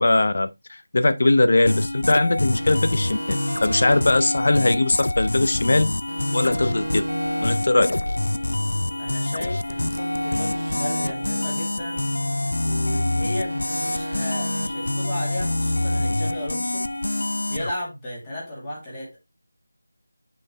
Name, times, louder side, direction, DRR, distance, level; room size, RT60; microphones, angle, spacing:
voice 1, 0.0-5.9 6.3-7.0 7.4-8.0, left 2 dB, 55° left, 0.8 m, -20 dB
sound 1, 1.7-17.7, left 1 dB, 80° left, 0.4 m, -26 dB
sound 2, 2.5-5.8 6.1-9.3 9.7-12.9 13.2-16.4, right 1 dB, 85° right, 1.0 m, -36 dB
voice 2, 9.0-12.0 12.6-19.2, left 1 dB, 15° left, 2.3 m, -34 dB
8.3 x 4.5 x 3.0 m
figure-of-eight pair, 175°, 0 cm